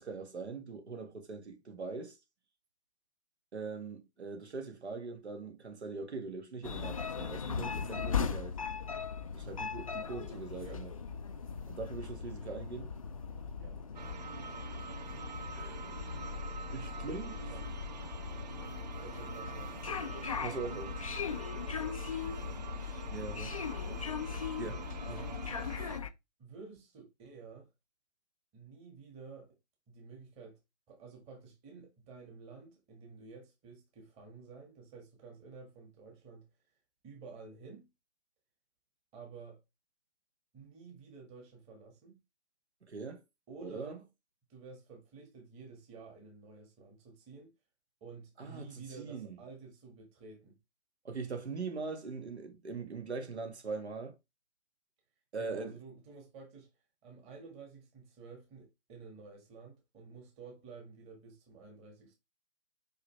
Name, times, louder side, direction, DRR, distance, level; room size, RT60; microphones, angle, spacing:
voice 1, 0.0-2.2 3.5-8.5 9.3-10.9 11.7-12.9 15.5-16.0 16.7-17.5 20.4-20.9 23.1-23.6 24.6-25.2 42.9-43.2 43.6-44.0 48.4-49.4 51.0-54.1 55.3-55.7, right 4 dB, 65° right, 1.9 m, -41 dB
sound 1, 6.6-26.1, left 6 dB, 30° left, 0.4 m, -39 dB
voice 2, 10.5-10.9 13.5-13.8 17.1-17.6 19.0-21.2 21.5-22.7 23.7-24.1 25.0-25.5 26.4-27.7 28.5-29.5 29.9-30.6 30.9-36.5 37.0-37.9 39.1-39.6 40.5-42.2 43.5-44.0 44.5-47.5 48.0-50.6 55.4-56.7 57.0-62.1, right 4 dB, 15° right, 1.7 m, -51 dB
sound 2, 13.9-26.0, right 7 dB, 35° right, 0.5 m, -46 dB
5.7 x 5.1 x 3.3 m
figure-of-eight pair, 130°, 35 cm